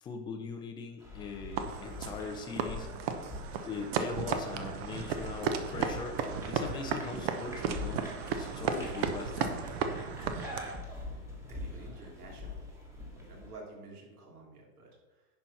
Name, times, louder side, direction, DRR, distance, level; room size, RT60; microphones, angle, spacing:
voice 1, 0.0-2.9 3.6-8.1 8.4-9.6, left 5 dB, 10° left, 4 dB, 0.5 m, -41 dB
sound 1, 1.0-13.5, left 2 dB, 5° right, 1.4 m, -44 dB
sound 2, 1.6-10.8, right 6 dB, 40° right, 0.9 m, -35 dB
voice 2, 11.5-12.8 13.2-15.3, right 2 dB, 75° right, -1 dB, 3.1 m, -50 dB
10.5 x 4.6 x 5.5 m, 1.2 s
supercardioid pair, 150°, 45 cm